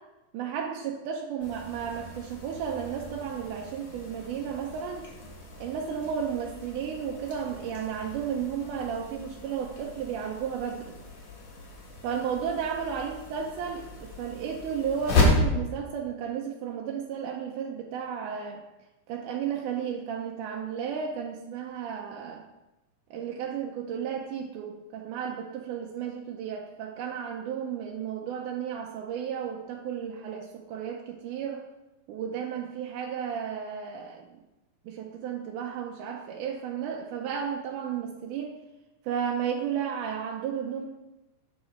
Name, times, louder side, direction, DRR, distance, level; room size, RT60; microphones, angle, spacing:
voice 1, 0.3-5.0 5.6-11.0 12.0-18.6 19.1-22.4 23.1-31.7 32.1-34.2 34.9-38.6 39.0-40.9, right 7 dB, 90° right, 0 dB, 2.2 m, -33 dB
sound 1, 1.4-15.4, left 2 dB, 70° left, 3.1 m, -33 dB
8.7 x 5.7 x 4.3 m, 1.0 s
omnidirectional pair, 3.6 m